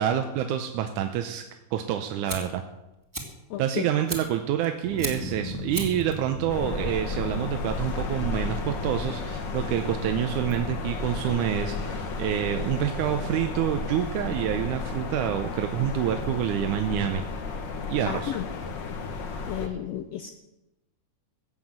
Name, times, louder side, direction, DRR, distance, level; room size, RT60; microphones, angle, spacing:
voice 1, 0.0-1.4 1.7-2.6 3.6-17.2 17.9-18.3, right 10 dB, 85° right, 6 dB, 2.3 m, -27 dB
Fire, 1.8-12.3, right 1 dB, 10° right, 1.6 m, -41 dB
voice 2, 3.5-3.8 18.1-18.5 19.4-20.3, left 11 dB, 75° left, 7 dB, 1.6 m, -32 dB
sound 1, 4.8-11.2 11.6-12.2, equal, 65° right, 2.8 m, -40 dB
sound 2, 6.5-19.7, left 4 dB, 50° left, 1.4 m, -33 dB
15.5 x 8.1 x 7.5 m, 0.95 s
omnidirectional pair, 3.6 m